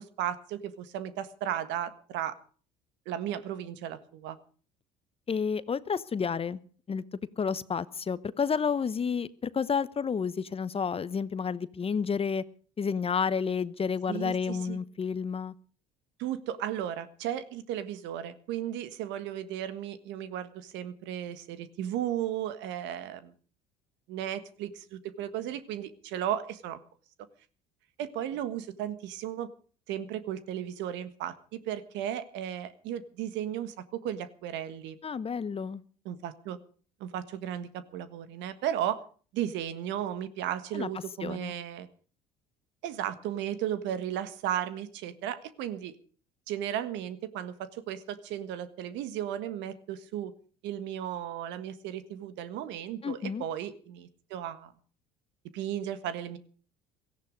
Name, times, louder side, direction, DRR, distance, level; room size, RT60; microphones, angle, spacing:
voice 1, 0.0-2.4 3.0-4.4 14.1-14.8 16.2-23.3 24.1-26.8 28.0-29.5 29.9-35.0 36.0-36.6 37.0-39.0 39.3-41.9 42.8-46.0 46.5-50.3 50.6-54.7 55.5-56.4, right 10 dB, 65° right, 13 dB, 1.6 m, -35 dB
voice 2, 5.3-6.6 6.9-7.0 7.4-12.4 12.8-15.5 35.0-35.8 40.7-40.9 41.2-41.5 53.0-53.4, left 6 dB, 30° left, 17 dB, 0.8 m, -30 dB
17.0 x 14.5 x 5.2 m, 0.42 s
hypercardioid pair, 65°, 20 cm